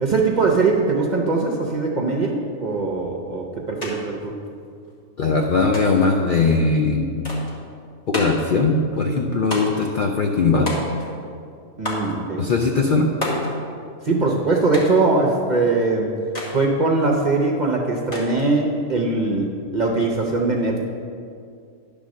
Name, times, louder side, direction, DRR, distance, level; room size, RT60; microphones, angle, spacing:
voice 1, 0.0-4.3 11.8-12.4 14.0-16.1 16.5-20.8, right 3 dB, 45° right, 0 dB, 0.6 m, -21 dB
sound 1, 3.8-3.9 4.2-5.0 5.7-6.1 7.2-7.6 8.1-8.5 9.5-9.9 10.7-11.2 11.8-12.1 13.2-13.5 14.7-15.0 16.3-16.6 18.1-18.5, left 1 dB, 30° left, 1.5 m, -29 dB
voice 2, 5.2-7.2 8.1-10.7 12.4-13.1, left 3 dB, 65° left, 1 dB, 0.5 m, -20 dB
10.5 x 3.5 x 6.3 m, 2.4 s
omnidirectional pair, 1.5 m